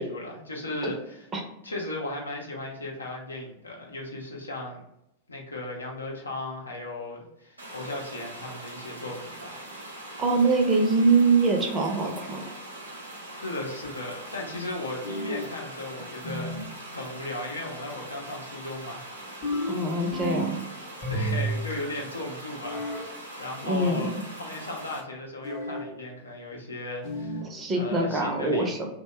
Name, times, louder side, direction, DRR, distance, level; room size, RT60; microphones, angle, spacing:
voice 1, 0.0-1.3 1.6-4.8 5.3-9.7 13.4-16.5 16.9-19.1 19.5-19.6 21.1-24.1 24.4-27.4 27.7-28.9, left 2 dB, 75° left, -1 dB, 0.6 m, -36 dB
sound 1, 7.6-25.0, right 1 dB, 80° right, 0.6 m, -42 dB
voice 2, 10.2-12.4 19.7-20.6 23.6-24.1 27.4-28.9, right 3 dB, 20° right, 1 dB, 0.6 m, -23 dB
sound 2, 15.0-15.6 16.2-16.8 19.4-20.6 21.0-21.7 22.6-23.1 25.4-25.9 27.0-27.5, right 1 dB, 35° left, 0.7 m, -31 dB
2.8 x 2.2 x 3.1 m, 0.83 s
figure-of-eight pair, 90°, 0 cm